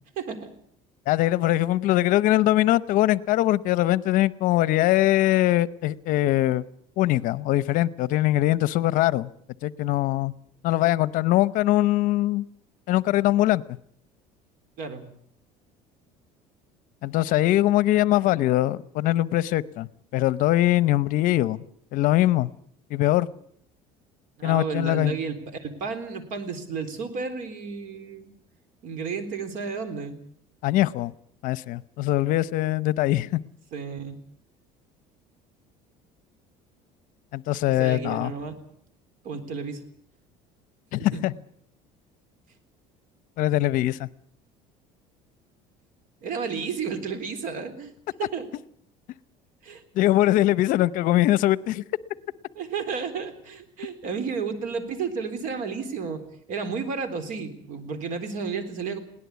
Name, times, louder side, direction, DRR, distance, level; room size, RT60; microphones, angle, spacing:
voice 1, 0.2-0.5 14.8-15.1 24.4-28.3 28.8-30.2 33.7-34.2 37.8-38.6 39.2-39.8 41.1-41.2 46.2-47.9 48.2-48.5 49.6-49.8 52.6-56.2 56.5-59.0, right 5 dB, 60° right, 10 dB, 3.7 m, -32 dB
voice 2, 1.1-6.6 7.0-9.3 9.6-10.3 10.6-12.4 12.9-13.6 17.0-19.9 20.1-21.6 21.9-22.5 22.9-23.3 24.4-25.1 30.6-31.1 31.4-33.4 37.3-38.3 40.9-41.3 43.4-44.1 50.0-51.8, left 15 dB, 60° left, 19 dB, 0.8 m, -22 dB
21.0 x 18.0 x 8.3 m, 0.67 s
cardioid pair, 135°, 15 cm